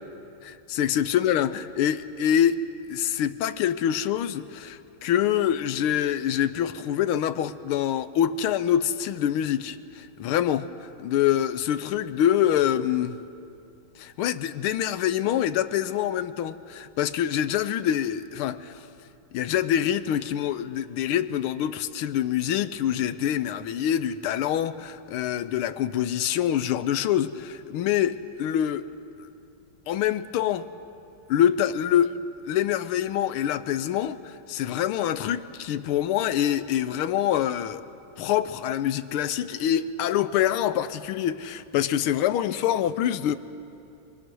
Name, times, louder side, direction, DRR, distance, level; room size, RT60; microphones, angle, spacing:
voice 1, 0.4-13.2 14.0-18.8 19.3-28.9 29.9-30.7 31.3-32.2 32.5-37.9 38.2-43.4, left 10 dB, 90° left, 1.6 m, -25 dB
24.5 x 22.5 x 6.2 m
omnidirectional pair, 2.3 m